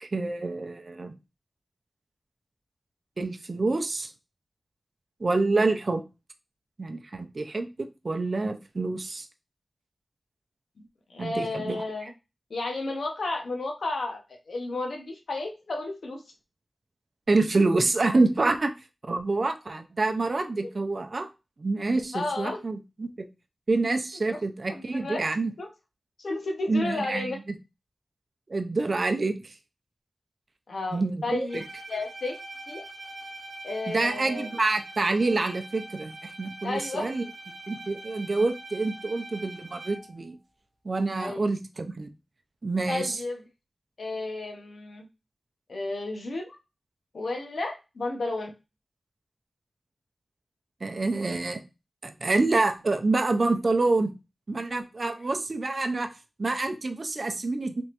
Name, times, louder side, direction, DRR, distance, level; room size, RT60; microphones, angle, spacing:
voice 1, 0.0-1.1 3.2-4.1 5.2-6.0 6.8-9.3 11.2-11.8 17.3-18.8 19.1-21.3 21.6-23.3 23.7-25.5 26.7-27.4 28.5-29.5 30.9-31.6 33.9-37.2 37.7-40.4 40.8-42.1 42.6-43.2 50.8-51.6 52.0-54.1 54.5-56.1 56.4-57.8, right 3 dB, 50° right, 6 dB, 0.5 m, -27 dB
voice 2, 11.1-12.1 12.5-16.2 22.1-22.6 24.3-24.4 24.7-25.2 25.6-25.7 26.2-27.4 30.7-31.6 31.9-32.4 32.7-32.8 33.6-34.6 36.6-37.1 41.2-41.5 42.9-43.4 44.0-45.1 45.7-46.6 47.1-48.5, left 2 dB, 85° left, 3 dB, 0.8 m, -32 dB
Bowed string instrument, 31.5-40.3, right 2 dB, 80° right, 0.8 m, -43 dB
3.5 x 3.1 x 2.9 m, 0.28 s
wide cardioid pair, 85°, 0 cm